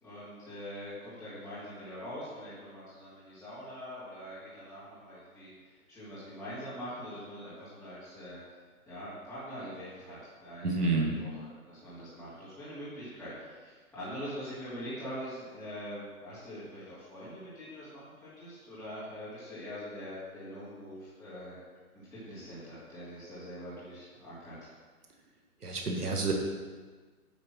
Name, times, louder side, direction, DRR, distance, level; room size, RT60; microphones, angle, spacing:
voice 1, 0.0-8.4 8.9-21.6 21.9-24.5, equal, 5° left, -16 dB, 2.7 m, -43 dB
voice 2, 10.6-11.2 25.6-26.3, right 3 dB, 85° right, 1 dB, 1.7 m, -29 dB
9.4 x 4.4 x 6.1 m, 1.4 s
hypercardioid pair, 140°, 45 cm